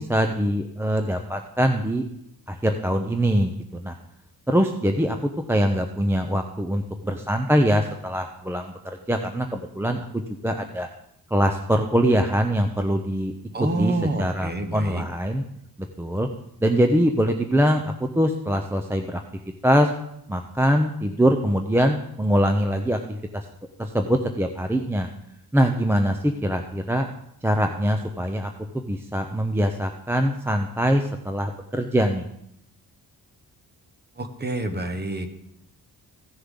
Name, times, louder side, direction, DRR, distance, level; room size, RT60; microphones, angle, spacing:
voice 1, 0.0-2.0 2.5-4.0 4.5-8.7 9.1-10.9 11.3-13.3 13.8-15.4 16.0-16.3 16.6-19.2 19.6-19.9 20.3-23.5 23.8-25.1 25.5-27.1 27.4-28.5 28.7-32.2, equal, 5° right, 5 dB, 0.6 m, -23 dB
voice 2, 13.5-15.0 34.2-35.3, right 2 dB, 25° right, 7 dB, 1.1 m, -27 dB
15.5 x 6.7 x 3.7 m, 0.75 s
wide cardioid pair, 115°, 37 cm